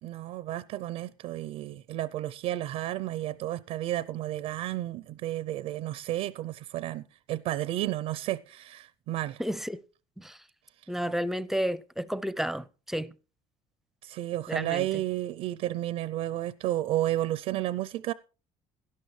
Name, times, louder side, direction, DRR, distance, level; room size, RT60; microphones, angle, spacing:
voice 1, 0.0-9.4 14.0-18.1, right 14 dB, 70° right, 0.5 m, -32 dB
voice 2, 9.4-9.8 10.2-10.4 10.9-13.1 14.5-14.9, equal, 5° right, 0.5 m, -31 dB
17.5 x 12.0 x 3.2 m
cardioid pair, 120°, 12 cm